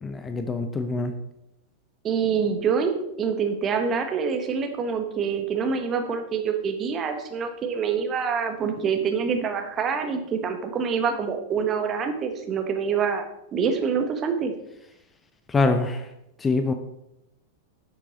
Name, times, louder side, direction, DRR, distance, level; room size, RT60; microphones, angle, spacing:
voice 1, 0.0-1.1 15.5-16.1 16.4-16.7, left 3 dB, 15° left, 8 dB, 0.8 m, -24 dB
voice 2, 2.0-14.5, right 6 dB, 25° right, 5 dB, 1.5 m, -26 dB
11.0 x 7.5 x 4.1 m, 0.82 s
figure-of-eight pair, 90°, 0 cm